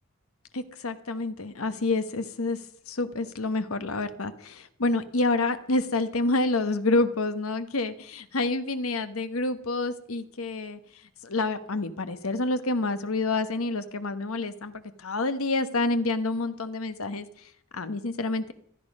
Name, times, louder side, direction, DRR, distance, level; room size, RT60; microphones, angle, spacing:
voice 1, 0.5-2.6 2.9-10.8 11.2-14.7 15.0-17.2 17.7-18.5, left 2 dB, 90° left, 11 dB, 1.2 m, -28 dB
15.5 x 12.5 x 5.4 m, 0.65 s
head